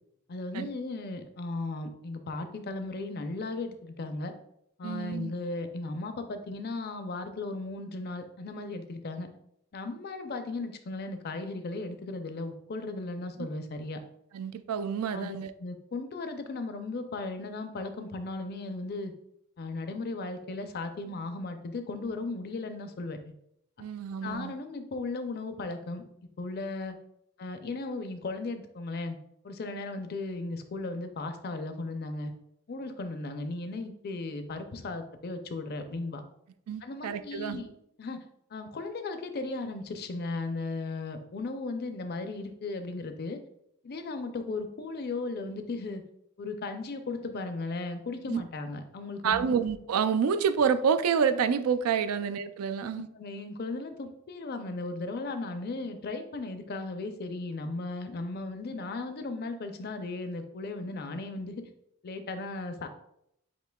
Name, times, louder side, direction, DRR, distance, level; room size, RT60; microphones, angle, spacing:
voice 1, 0.3-4.3 4.8-9.3 9.7-14.0 15.1-19.1 19.6-23.3 24.2-26.0 26.4-27.0 27.4-29.2 29.4-32.3 32.7-36.2 36.8-37.7 38.0-38.2 38.5-43.4 43.8-46.0 46.4-49.5 52.8-61.6 62.0-62.9, left 3 dB, 45° left, 7 dB, 0.5 m, -36 dB
voice 2, 4.8-5.3 14.3-15.5 23.8-24.5 36.7-37.6 48.3-48.4 49.2-53.1, right 6 dB, 85° right, 11 dB, 0.4 m, -28 dB
8.0 x 2.8 x 2.3 m, 0.75 s
head